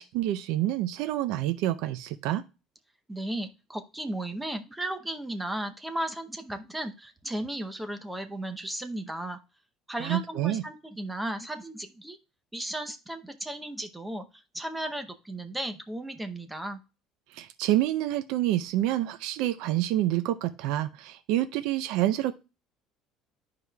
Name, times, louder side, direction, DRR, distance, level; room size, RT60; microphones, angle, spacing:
voice 1, 0.0-2.4 10.0-10.6 17.3-22.3, right 14 dB, 70° right, 10 dB, 0.5 m, -27 dB
voice 2, 3.1-9.4 9.9-12.2 12.5-16.8, right 1 dB, 5° right, 7 dB, 0.7 m, -35 dB
11.0 x 4.8 x 2.2 m, 0.31 s
cardioid pair, 165°, 0 cm